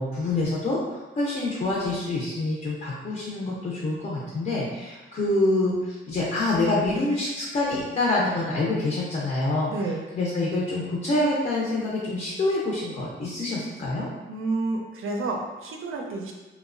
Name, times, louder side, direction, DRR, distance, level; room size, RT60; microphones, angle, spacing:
voice 1, 0.0-14.1, left 2 dB, 40° left, -5 dB, 0.5 m, -26 dB
voice 2, 9.7-10.0 14.3-16.3, right 3 dB, 80° right, 1 dB, 0.5 m, -30 dB
2.9 x 2.0 x 2.4 m, 1.2 s
wide cardioid pair, 120°, 21 cm